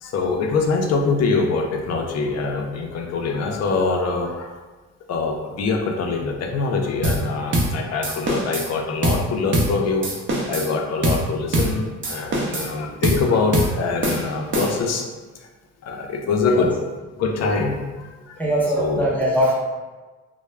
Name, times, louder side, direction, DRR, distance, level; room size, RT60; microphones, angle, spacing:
voice 1, 0.0-4.5 5.1-10.1 10.5-15.1 15.8-16.7 17.2-18.4 18.8-19.1, left 4 dB, 60° left, 2 dB, 0.5 m, -24 dB
sound 1, 7.0-7.3 7.5-7.8 8.0-8.7 9.0-9.3 9.5-9.8 10.0-10.7 11.0-11.3 11.5-11.8 12.0-12.7 13.0-13.3 13.5-13.8 14.0-14.9, right 1 dB, 40° right, 0.6 m, -23 dB
voice 2, 18.4-19.5, right 1 dB, 5° left, -6 dB, 0.5 m, -21 dB
2.2 x 2.0 x 3.2 m, 1.3 s
cardioid pair, 90°, 30 cm